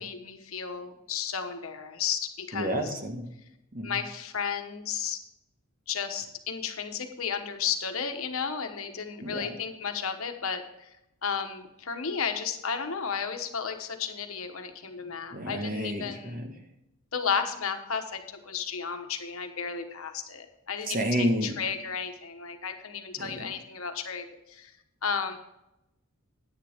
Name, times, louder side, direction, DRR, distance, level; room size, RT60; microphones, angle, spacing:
voice 1, 0.0-2.9 3.8-5.2 5.9-11.0 11.2-16.4 17.1-24.7 25.0-25.4, left 6 dB, 80° left, 6 dB, 1.2 m, -33 dB
voice 2, 2.5-3.3 3.7-4.0 9.2-9.5 15.3-16.5 20.9-21.6 23.2-23.5, equal, 45° right, 4 dB, 1.5 m, -30 dB
10.0 x 9.6 x 3.6 m, 0.88 s
head